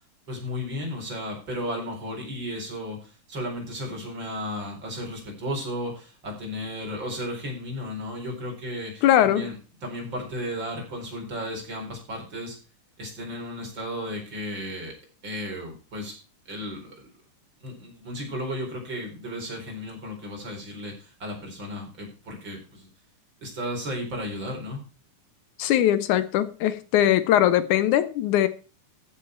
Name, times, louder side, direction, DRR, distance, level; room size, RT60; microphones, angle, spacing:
voice 1, 0.3-9.5 9.8-12.6 13.0-14.9 15.2-16.2 16.5-17.1 17.6-22.9 23.4-24.8, equal, 35° right, 5.1 m, -34 dB
voice 2, 9.0-9.5 25.6-28.5, left 12 dB, 80° left, 2.2 m, -21 dB
14.5 x 8.0 x 4.5 m
omnidirectional pair, 3.5 m